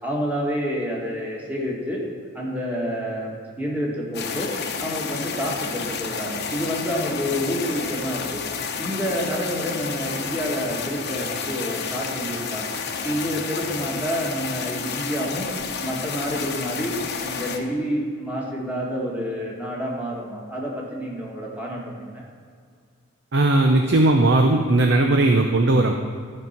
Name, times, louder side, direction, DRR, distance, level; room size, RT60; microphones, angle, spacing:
voice 1, 0.0-2.0 2.3-4.5 4.8-8.4 8.8-12.6 13.0-15.5 15.8-22.2, equal, 10° right, -3 dB, 1.9 m, -28 dB
sound 1, 4.1-17.6, left 5 dB, 55° left, 0.9 m, -30 dB
voice 2, 23.3-25.9, right 2 dB, 60° right, 4 dB, 0.7 m, -18 dB
14.0 x 5.4 x 5.8 m, 2.1 s
head